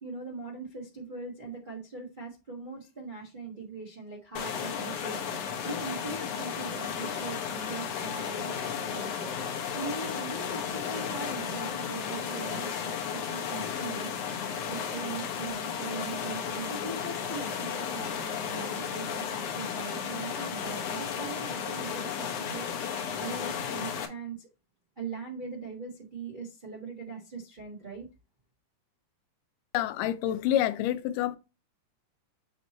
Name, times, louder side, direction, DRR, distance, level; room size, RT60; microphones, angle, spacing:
voice 1, 0.0-14.1 14.7-24.5 25.0-28.1, right 4 dB, 85° right, 0.4 m, -41 dB
sound 1, 4.4-24.1, left 7 dB, 65° left, 1.7 m, -34 dB
voice 2, 29.7-31.4, left 12 dB, 90° left, 2.2 m, -27 dB
8.0 x 2.9 x 4.1 m
omnidirectional pair, 3.7 m